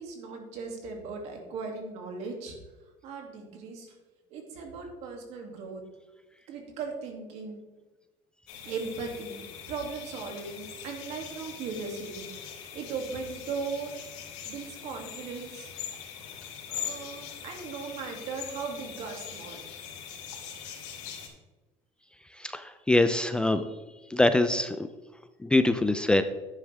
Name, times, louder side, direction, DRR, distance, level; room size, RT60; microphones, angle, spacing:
voice 1, 0.0-2.5 3.0-3.9 4.3-5.8 6.5-7.6 8.6-12.3 12.7-13.9 14.5-15.7 16.7-19.6, right 4 dB, 65° right, 2 dB, 2.6 m, -38 dB
sound 1, 8.5-21.3, left 8 dB, 75° left, 3.5 m, -42 dB
voice 2, 22.4-23.6 24.1-24.9 25.4-26.2, left 2 dB, 5° left, 10 dB, 0.4 m, -24 dB
11.0 x 9.7 x 3.5 m, 1.1 s
cardioid pair, 150°, 12 cm